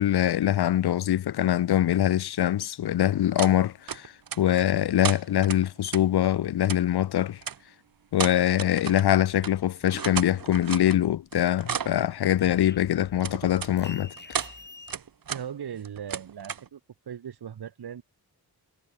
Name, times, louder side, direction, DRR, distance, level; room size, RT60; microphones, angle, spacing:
voice 1, 0.0-7.4 8.1-14.1, left 11 dB, 90° left, 0.7 m, -23 dB
sound 1, 3.4-3.5 3.9-4.6 5.0-6.0 6.6-6.8 7.4-7.6 8.1-9.1 9.4-9.5 9.8-11.0 11.3-12.0 13.2-13.7 14.2-14.5 14.9-15.4 15.7-16.7, right 7 dB, 65° right, 1.6 m, -33 dB
sound 2, 9.8-11.2 11.5-14.9, left 3 dB, 25° left, 3.0 m, -47 dB
voice 2, 15.3-16.8 17.1-18.0, right 8 dB, 85° right, 2.2 m, -38 dB
wide cardioid pair, 120°, 38 cm